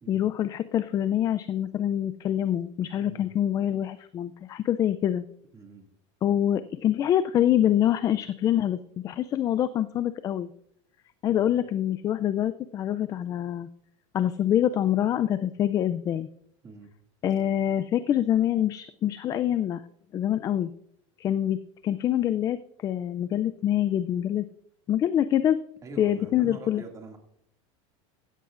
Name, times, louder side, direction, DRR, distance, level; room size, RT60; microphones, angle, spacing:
voice 1, 0.1-5.2 6.2-10.5 11.2-13.7 14.1-16.3 17.2-19.8 20.1-20.7 21.2-24.5 24.9-25.6 26.0-26.8, left 11 dB, 20° left, 13 dB, 0.3 m, -25 dB
voice 2, 2.9-3.3 5.5-5.9 11.3-11.6 16.6-16.9 25.8-27.2, right 3 dB, 20° right, 2 dB, 2.2 m, -44 dB
16.5 x 13.5 x 2.5 m, 0.71 s
supercardioid pair, 150°, 16 cm